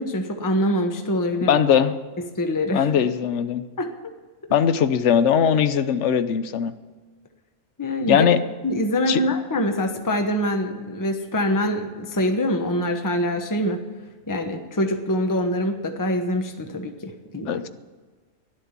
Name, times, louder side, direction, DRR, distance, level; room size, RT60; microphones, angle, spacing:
voice 1, 0.0-1.6 2.4-2.9 3.8-3.9 7.8-8.3 8.6-13.8 14.3-17.6, equal, 15° left, 5 dB, 0.9 m, -24 dB
voice 2, 1.4-2.0 2.7-3.6 4.5-6.7 8.1-8.4 9.1-9.2 17.5-17.7, left 8 dB, 65° left, 11 dB, 1.0 m, -20 dB
12.0 x 11.0 x 7.3 m, 1.4 s
omnidirectional pair, 1.4 m